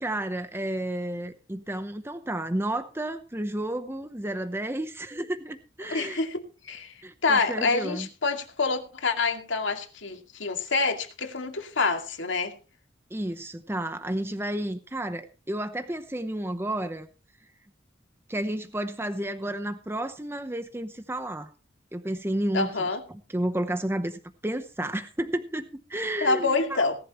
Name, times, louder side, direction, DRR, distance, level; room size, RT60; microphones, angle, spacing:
voice 1, 0.0-6.2 7.0-8.1 13.1-17.1 18.3-21.5 21.9-26.8, right 1 dB, 15° right, 0.8 m, -31 dB
voice 2, 5.9-6.9 7.2-12.5 22.5-23.0 26.2-27.0, left 4 dB, 90° left, 2.4 m, -27 dB
18.0 x 11.5 x 3.1 m
head